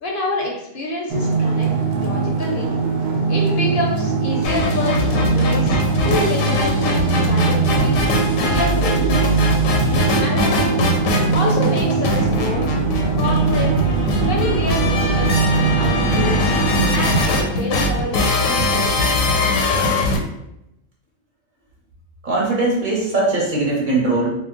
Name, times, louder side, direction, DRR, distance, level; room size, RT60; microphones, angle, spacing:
voice 1, 0.0-1.7 2.0-2.7 3.3-5.8 6.0-8.0 8.4-9.2 9.8-10.8 11.3-12.7 13.2-13.8 14.2-16.5 16.9-19.1, left 2 dB, 60° left, -1 dB, 0.6 m, -27 dB
sound 1, 1.1-17.2, right 5 dB, 75° right, 0.9 m, -21 dB
sound 2, 4.4-20.2, left 1 dB, 85° left, 1.0 m, -21 dB
voice 2, 22.2-24.3, right 2 dB, 45° right, -4 dB, 0.8 m, -20 dB
2.3 x 2.1 x 3.6 m, 0.85 s
omnidirectional pair, 1.3 m